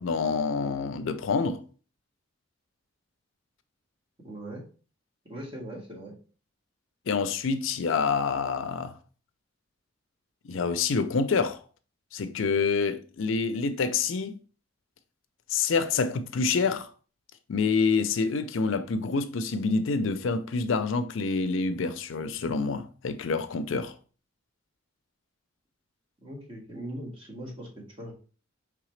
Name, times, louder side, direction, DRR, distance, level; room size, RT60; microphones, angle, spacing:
voice 1, 0.0-1.6 7.1-8.9 10.4-11.6 12.1-14.4 15.5-16.9 17.5-23.9, left 4 dB, 75° left, 0.5 m, -27 dB
voice 2, 4.2-4.6 5.2-6.1 26.2-28.1, right 1 dB, 25° right, 1.6 m, -40 dB
4.8 x 3.4 x 3.2 m
head